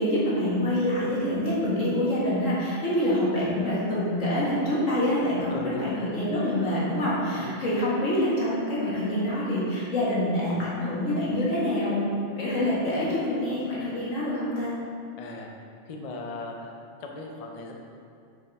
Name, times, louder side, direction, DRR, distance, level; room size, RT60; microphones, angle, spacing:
voice 1, 0.0-12.0 12.4-14.7, left 1 dB, 85° left, -8 dB, 2.0 m, -26 dB
voice 2, 5.5-6.0 7.3-7.5 15.2-15.5 15.9-16.7 17.0-17.7, left 3 dB, 45° left, 1 dB, 0.5 m, -37 dB
6.3 x 5.1 x 3.5 m, 2.4 s
omnidirectional pair, 1.3 m